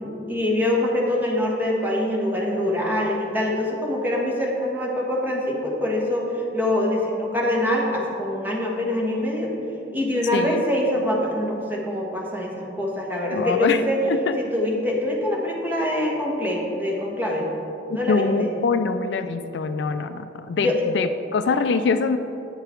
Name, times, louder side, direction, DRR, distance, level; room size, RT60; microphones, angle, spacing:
voice 1, 0.0-9.5 9.9-14.0 14.4-17.5 17.9-18.5 20.6-20.8, left 1 dB, 10° right, -3 dB, 1.4 m, -24 dB
voice 2, 10.3-10.6 13.3-13.8 14.1-14.4 18.1-22.2, left 4 dB, 65° left, 10 dB, 0.4 m, -24 dB
9.5 x 6.8 x 4.5 m, 2.9 s
head